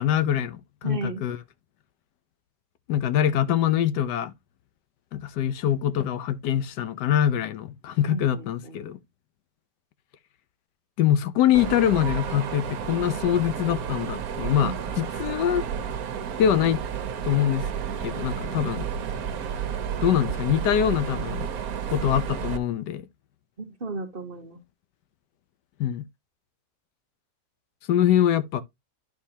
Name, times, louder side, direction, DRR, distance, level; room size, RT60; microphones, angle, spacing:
voice 1, 0.0-1.4 2.9-4.3 5.1-9.0 11.0-15.6 16.4-16.8 17.2-17.7 18.0-18.9 20.0-21.5 21.9-23.1 25.8-26.1 27.9-28.6, left 10 dB, 85° left, 1.3 m, -24 dB
voice 2, 0.8-1.2 8.1-8.8 14.5-14.8 23.6-24.6, right 3 dB, 40° right, 1.0 m, -34 dB
Mechanisms, 11.5-22.6, right 7 dB, 65° right, 1.2 m, -31 dB
11.5 x 4.5 x 2.8 m
omnidirectional pair, 1.8 m